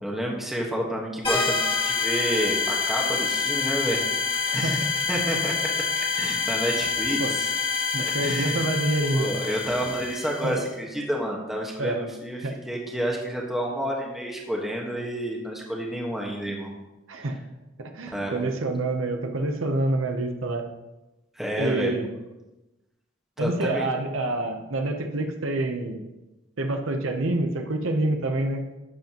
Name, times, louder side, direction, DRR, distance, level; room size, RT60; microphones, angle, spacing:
voice 1, 0.0-4.0 4.5-7.2 8.0-8.6 9.1-12.4 12.7-16.7 18.1-18.4 21.3-21.9 23.4-23.9, equal, ahead, -2 dB, 1.4 m, -29 dB
sound 1, 1.2-10.6, left 4 dB, 25° left, 1.9 m, -27 dB
voice 2, 4.4-4.9 7.2-7.3 7.9-9.3 10.4-10.7 11.8-12.0 12.4-12.5 17.1-17.4 17.8-20.7 21.6-22.1 23.4-26.0 26.6-28.6, right 2 dB, 90° right, 4 dB, 0.9 m, -27 dB
12.5 x 8.1 x 3.0 m, 1.0 s
head